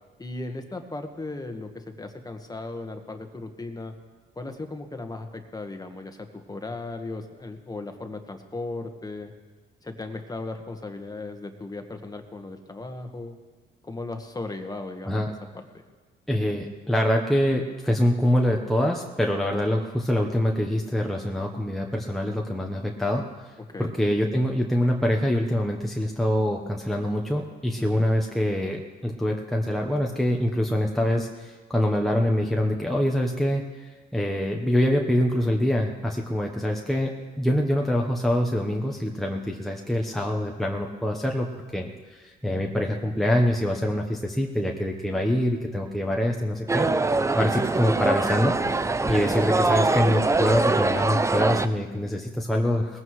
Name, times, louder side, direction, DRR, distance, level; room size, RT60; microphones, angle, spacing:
voice 1, 0.2-3.9 4.3-9.3 9.8-13.4 13.8-15.2 15.5-15.8 23.7-24.0 27.8-28.0 49.0-49.3, left 2 dB, 20° left, 5 dB, 1.5 m, -36 dB
voice 2, 16.3-23.5 23.8-48.5 49.1-53.0, left 1 dB, ahead, 0 dB, 1.1 m, -25 dB
sound 1, 46.7-51.7, right 3 dB, 15° right, 0.5 m, -23 dB
20.0 x 15.0 x 3.2 m, 1.4 s
cardioid pair, 90°, 20 cm